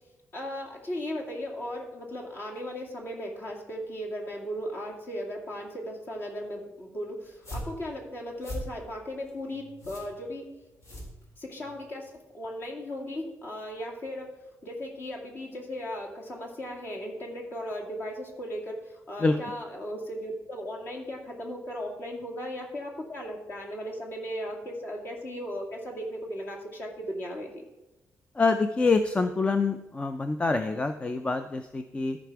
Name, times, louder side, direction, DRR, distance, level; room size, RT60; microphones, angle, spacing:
voice 1, 0.3-10.5 11.4-14.3 14.6-27.6, equal, 40° left, -1 dB, 2.3 m, -37 dB
sound 1, 7.2-11.7, equal, 60° left, 3.8 m, -41 dB
voice 2, 28.3-32.2, left 3 dB, 20° left, 8 dB, 0.4 m, -26 dB
14.0 x 5.0 x 4.7 m, 1.0 s
cardioid pair, 140°, 6 cm